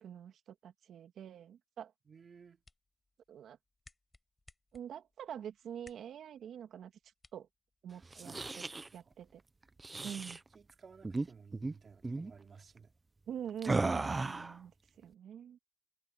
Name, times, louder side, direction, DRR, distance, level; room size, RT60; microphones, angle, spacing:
voice 1, 0.0-1.9 3.3-3.6 4.7-6.9 7.3-7.5 7.8-8.7 8.9-9.4 10.0-10.4 13.3-15.6, right 9 dB, 65° right, 2.8 m, -45 dB
voice 2, 2.1-2.6 7.9-8.4 9.1-9.2 10.5-12.9, right 5 dB, 40° right, 4.3 m, -57 dB
sound 1, 2.3-8.2, left 2 dB, 20° left, 6.3 m, -66 dB
sound 2, 8.0-8.9 9.8-10.4 11.0-11.3 11.5-11.7 12.0-12.3 13.6-14.6, right 3 dB, 20° right, 0.9 m, -35 dB
cardioid pair, 90°, 0 cm